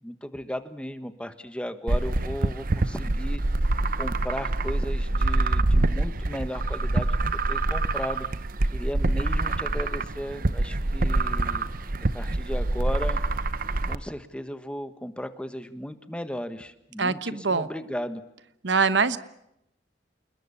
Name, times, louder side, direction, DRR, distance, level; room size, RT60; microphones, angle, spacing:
voice 1, 0.0-3.7 4.0-7.2 7.5-11.7 12.1-13.2 13.9-18.2, equal, 5° left, 10 dB, 1.4 m, -35 dB
sound 1, 1.9-14.0, right 2 dB, 50° right, 0.9 m, -26 dB
voice 2, 17.0-17.7 18.6-19.2, right 4 dB, 75° right, 14 dB, 1.1 m, -23 dB
28.5 x 21.0 x 7.1 m, 0.82 s
head